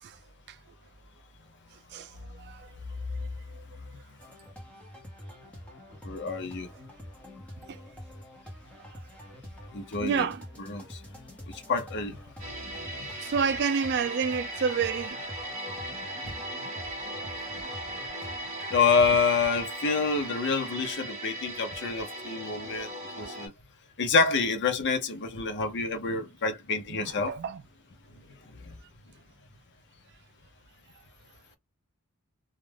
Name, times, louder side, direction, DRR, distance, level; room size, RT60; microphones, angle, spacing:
voice 1, 1.9-2.7 3.1-3.7 7.7-7.8 8.9-9.1 10.0-10.4 13.2-15.2 26.9-27.6, right 6 dB, 50° right, 0.3 m, -30 dB
sound 1, 4.2-19.2, left 1 dB, 5° left, 0.7 m, -47 dB
voice 2, 6.0-6.7 9.7-10.3 10.7-11.0 11.5-12.2 13.0-13.1 18.7-23.5 24.0-27.3 28.6-28.8, left 5 dB, 55° left, 0.7 m, -27 dB
sound 2, 12.4-23.5, right 1 dB, 30° right, 1.1 m, -38 dB
2.4 x 2.1 x 3.2 m
head